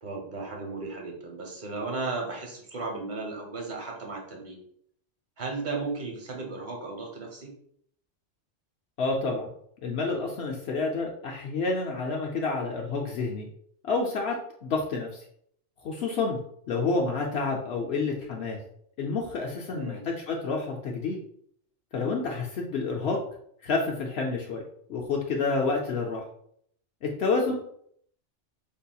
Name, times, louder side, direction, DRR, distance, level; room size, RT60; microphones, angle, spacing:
voice 1, 0.0-4.6 5.4-7.5 19.7-20.0 27.5-27.6, right 3 dB, 45° right, 0 dB, 1.0 m, -35 dB
voice 2, 9.0-9.5 9.8-13.5 13.8-14.4 14.6-15.3 15.8-16.4 16.7-18.6 19.0-21.2 21.9-23.2 23.6-24.6 24.9-26.2 27.0-27.5, left 4 dB, 65° left, 0 dB, 0.8 m, -29 dB
5.4 x 2.7 x 2.2 m, 0.67 s
omnidirectional pair, 1.2 m